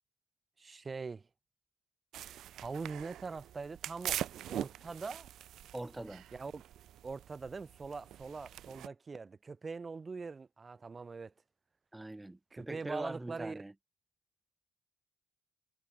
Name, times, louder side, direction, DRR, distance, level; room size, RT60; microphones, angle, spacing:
voice 1, 0.6-1.2 2.6-4.2 4.5-5.3 6.3-6.6 7.0-11.3 12.5-13.6, right 4 dB, 30° right, 1.2 m, -42 dB
sound 1, 2.1-8.9, right 12 dB, 75° right, 0.3 m, -43 dB
voice 2, 5.7-6.2 11.9-13.7, right 1 dB, 10° right, 1.0 m, -42 dB
cardioid pair, 90°, 0 cm